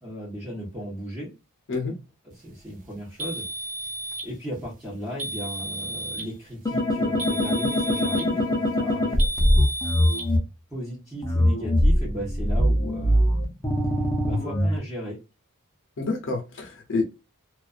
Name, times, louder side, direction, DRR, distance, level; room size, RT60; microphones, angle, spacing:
voice 1, 0.0-1.3 2.2-3.4 4.2-9.3 10.7-13.5 14.2-15.2, equal, 15° right, -7 dB, 0.8 m, -36 dB
sound 1, 3.2-4.3 5.2-6.3 7.2-8.3 9.2-10.3, right 1 dB, 40° right, 0.4 m, -33 dB
sound 2, 6.7-10.4 11.2-14.8, equal, 15° left, 0.5 m, -22 dB
voice 2, 16.0-17.0, left 3 dB, 60° left, 3 dB, 0.6 m, -28 dB
2.3 x 2.3 x 2.3 m, 0.28 s
head